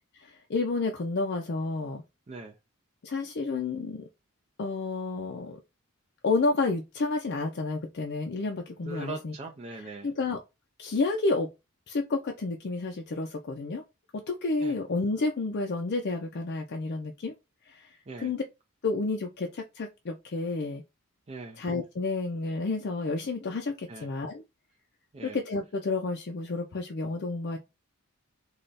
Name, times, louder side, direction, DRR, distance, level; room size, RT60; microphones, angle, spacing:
voice 1, 0.1-2.0 3.0-4.0 4.6-5.6 6.2-9.3 9.7-10.4 10.8-11.5 11.9-13.8 14.1-17.3 17.6-18.4 18.8-20.8 21.6-24.4 25.2-27.6, left 3 dB, 50° left, 0.5 m, -30 dB
voice 2, 8.8-10.1 14.6-14.7 18.1-18.3 21.3-21.6 23.9-24.1 25.1-25.4, right 3 dB, 30° right, 0.4 m, -40 dB
3.2 x 2.3 x 4.0 m
head